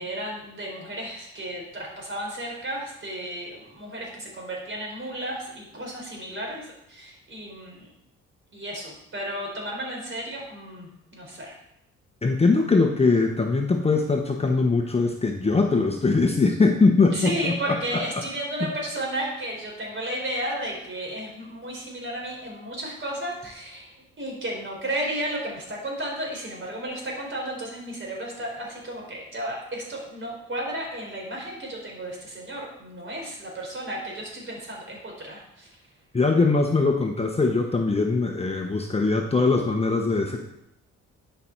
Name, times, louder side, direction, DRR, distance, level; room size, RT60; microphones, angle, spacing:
voice 1, 0.0-7.9 8.5-11.6 17.1-35.7, right 1 dB, 40° right, -1 dB, 4.1 m, -33 dB
voice 2, 12.2-18.0 18.6-18.7 36.1-40.4, left 3 dB, 20° left, 2 dB, 1.0 m, -22 dB
11.0 x 5.6 x 4.5 m, 0.79 s
cardioid pair, 90°, 30 cm